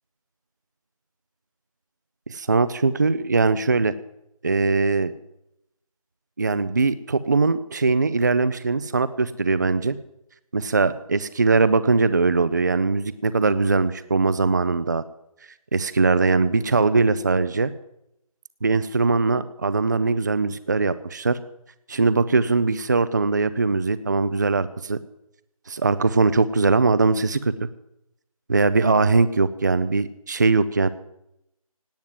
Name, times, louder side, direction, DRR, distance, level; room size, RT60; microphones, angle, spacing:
voice 1, 2.3-3.9 4.4-5.1 6.4-10.0 10.5-15.0 15.7-17.7 18.6-21.4 21.9-25.0 25.7-27.5 28.5-30.9, right 3 dB, 30° right, 16 dB, 0.5 m, -21 dB
17.5 x 9.4 x 7.6 m, 0.80 s
figure-of-eight pair, 165°, 19 cm